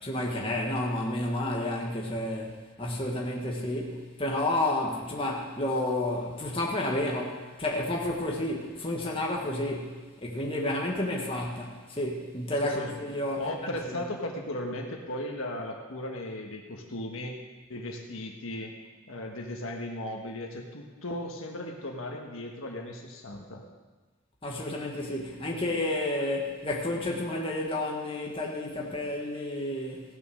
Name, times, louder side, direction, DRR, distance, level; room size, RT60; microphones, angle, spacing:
voice 1, 0.0-10.0 10.2-14.0 24.4-30.0, left 1 dB, 25° left, -2 dB, 1.6 m, -31 dB
voice 2, 12.6-13.0 13.4-17.4 17.7-18.7 19.1-23.6, left 1 dB, 70° left, 1 dB, 1.5 m, -36 dB
16.5 x 6.9 x 6.3 m, 1.3 s
head